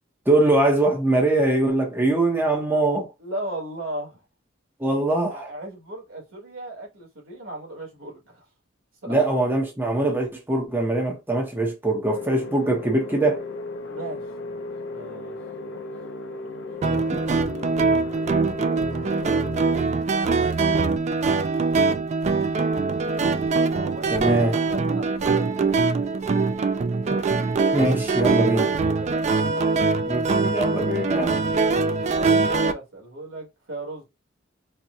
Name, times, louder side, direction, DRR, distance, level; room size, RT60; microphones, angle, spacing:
voice 1, 0.3-3.1 4.8-5.5 9.1-13.4 24.1-24.5 27.7-28.7 30.1-31.4, right 2 dB, 10° right, 0.8 m, -22 dB
voice 2, 3.2-4.2 5.3-8.4 9.0-9.2 13.9-15.4 15.7-15.8 20.1-20.5 23.7-25.8 26.0-26.6 28.4-29.2 31.2-31.9 32.1-34.0, right 1 dB, 85° right, 1.8 m, -37 dB
sound 1, 12.1-19.8, left 3 dB, 65° left, 0.6 m, -36 dB
sound 2, 16.8-32.7, right 4 dB, 35° right, 0.3 m, -23 dB
4.2 x 2.2 x 2.6 m
head